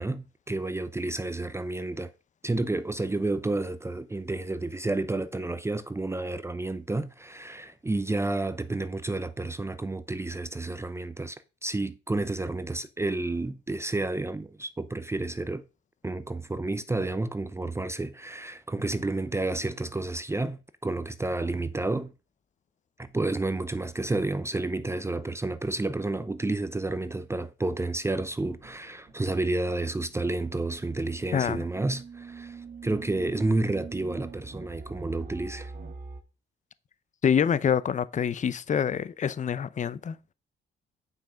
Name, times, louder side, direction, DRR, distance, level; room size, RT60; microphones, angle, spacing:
voice 1, 0.0-2.1 2.4-15.6 16.0-22.1 23.0-35.7, right 2 dB, 15° right, 0.6 m, -30 dB
sound 1, 28.3-36.2, right 4 dB, 50° right, 1.8 m, -44 dB
voice 2, 31.3-31.6 37.2-40.3, left 7 dB, 40° left, 0.7 m, -26 dB
9.3 x 5.9 x 5.0 m
cardioid pair, 90°, 20 cm